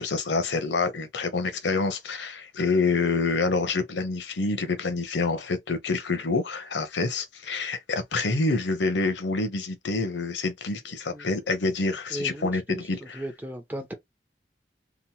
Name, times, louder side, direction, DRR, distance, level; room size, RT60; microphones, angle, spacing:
voice 1, 0.0-13.2, left 3 dB, 85° left, 0.7 m, -27 dB
voice 2, 12.1-12.8 13.1-13.9, right 1 dB, 10° right, 0.6 m, -35 dB
2.9 x 2.1 x 2.7 m
head